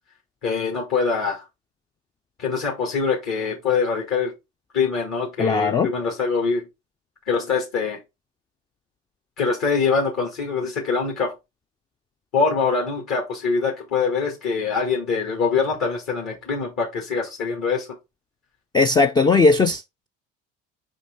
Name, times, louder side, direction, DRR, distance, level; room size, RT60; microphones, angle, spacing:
voice 1, 0.4-1.4 2.4-4.3 4.7-6.7 7.3-8.0 9.4-11.3 12.3-17.9, left 5 dB, 50° left, 2.1 m, -24 dB
voice 2, 5.4-5.9 18.7-20.1, left 3 dB, 15° left, 0.3 m, -18 dB
5.3 x 5.1 x 3.7 m
hypercardioid pair, 60°, 37 cm